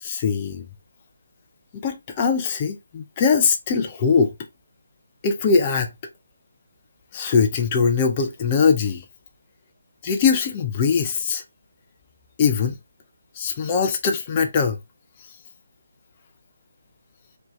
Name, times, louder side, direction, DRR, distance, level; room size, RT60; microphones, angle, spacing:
voice 1, 0.0-0.6 1.7-4.3 5.2-5.9 7.1-9.0 10.0-11.4 12.4-12.8 13.4-14.8, left 5 dB, 15° left, 0.5 m, -21 dB
4.5 x 2.9 x 3.0 m
hypercardioid pair, 175°, 0 cm